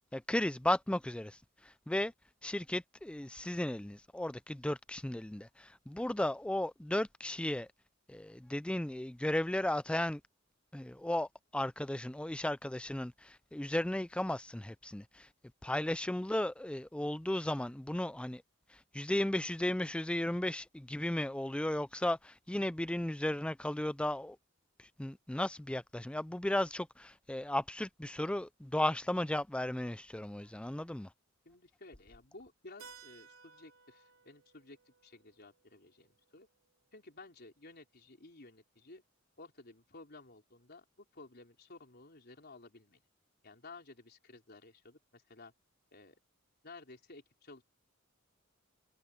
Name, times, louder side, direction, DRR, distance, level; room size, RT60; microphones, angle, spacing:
voice 1, 0.1-2.1 2.4-7.7 8.1-10.2 10.7-15.3 15.6-18.4 18.7-24.4 24.8-31.1, left 1 dB, 5° left, 0.4 m, -35 dB
voice 2, 31.4-36.5 36.9-39.0 39.4-43.0 43.4-45.5 45.9-46.2 46.6-47.6, left 3 dB, 55° left, 4.3 m, -54 dB
Keyboard (musical), 32.8-37.3, right 5 dB, 85° right, 4.0 m, -59 dB
head